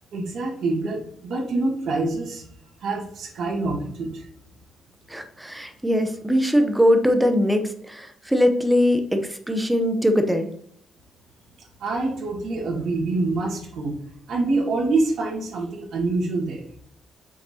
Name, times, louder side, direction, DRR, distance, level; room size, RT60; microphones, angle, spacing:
voice 1, 0.1-2.5 2.8-4.3 11.8-14.0 14.3-16.6, right 3 dB, 60° right, -2 dB, 1.7 m, -26 dB
voice 2, 5.1-10.5, equal, 5° right, 6 dB, 0.7 m, -21 dB
7.8 x 5.7 x 2.8 m, 0.67 s
cardioid pair, 175°, 0 cm